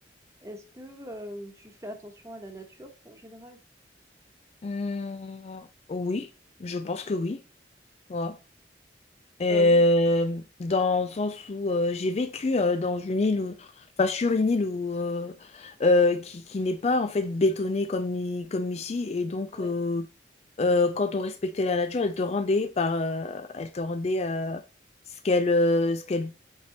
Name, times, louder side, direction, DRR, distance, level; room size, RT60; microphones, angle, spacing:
voice 1, 0.4-3.6 9.5-9.9 19.5-19.7, equal, 15° right, 1.2 m, -41 dB
voice 2, 4.6-6.3 6.6-7.4 8.1-8.4 9.4-13.7 14.0-20.1 20.6-24.6 25.2-26.3, left 2 dB, 35° left, 0.4 m, -26 dB
8.1 x 3.4 x 4.0 m
head